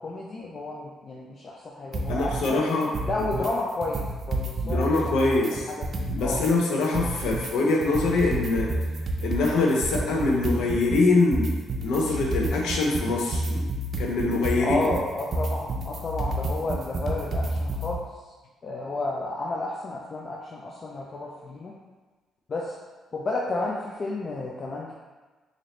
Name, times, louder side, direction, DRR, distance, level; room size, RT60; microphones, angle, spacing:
voice 1, 0.0-2.6 3.0-5.3 5.7-6.4 14.6-18.1 18.6-21.7 22.5-22.8 23.1-24.9, left 2 dB, 45° left, -3 dB, 0.4 m, -31 dB
sound 1, 1.9-2.5 2.8-3.5 3.8-6.5 6.8-17.9, right 2 dB, 50° right, 0.5 m, -30 dB
voice 2, 2.1-2.9 4.6-5.7 6.1-8.7 9.2-11.6 11.8-13.7 14.0-14.9, left 3 dB, 85° left, -1 dB, 0.6 m, -24 dB
4.0 x 2.6 x 3.1 m, 1.3 s
cardioid pair, 90°, 0 cm